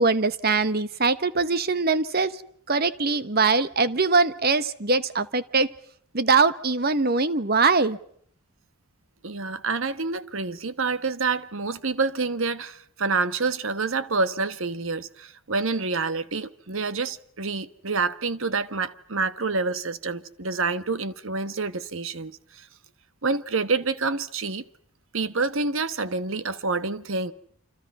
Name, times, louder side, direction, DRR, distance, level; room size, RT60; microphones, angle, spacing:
voice 1, 0.0-2.4 2.7-5.7 6.1-8.0, right 4 dB, 45° right, 1.1 m, -22 dB
voice 2, 9.2-22.7 23.2-24.6 25.1-27.3, right 4 dB, 65° right, 1.2 m, -27 dB
29.5 x 26.5 x 5.5 m
head